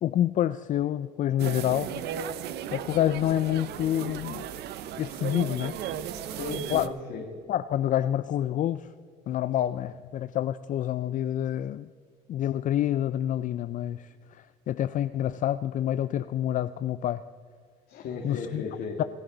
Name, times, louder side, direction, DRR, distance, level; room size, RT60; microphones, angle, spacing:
voice 1, 0.0-2.0 2.7-4.4 5.0-5.8 6.7-6.9 7.5-8.9 9.3-11.9 12.3-17.2 18.2-18.6 19.0-19.1, left 11 dB, 50° left, 13 dB, 0.4 m, -27 dB
sound 1, 1.4-6.9, right 9 dB, 75° right, 0.8 m, -35 dB
voice 2, 6.4-7.3 17.9-19.0, left 4 dB, 75° left, 0 dB, 2.1 m, -35 dB
26.5 x 11.0 x 3.9 m, 2.1 s
cardioid pair, 110°, 17 cm